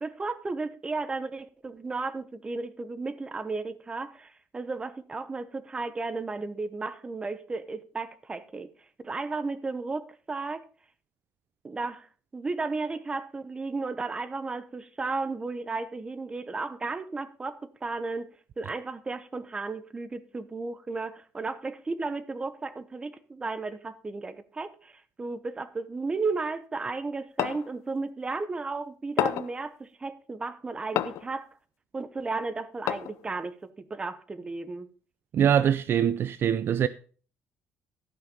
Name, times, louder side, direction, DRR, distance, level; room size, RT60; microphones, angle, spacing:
voice 1, 0.0-8.7 9.0-10.6 11.6-12.1 12.3-31.5 31.9-34.9, right 3 dB, 20° right, 0.8 m, -34 dB
sound 1, 27.4-27.7 29.2-29.6 31.0-31.3 32.9-33.3, left 13 dB, 80° left, 0.6 m, -29 dB
voice 2, 35.3-36.9, right 9 dB, 50° right, 0.4 m, -23 dB
13.0 x 5.7 x 5.3 m
cardioid pair, 130°, 5 cm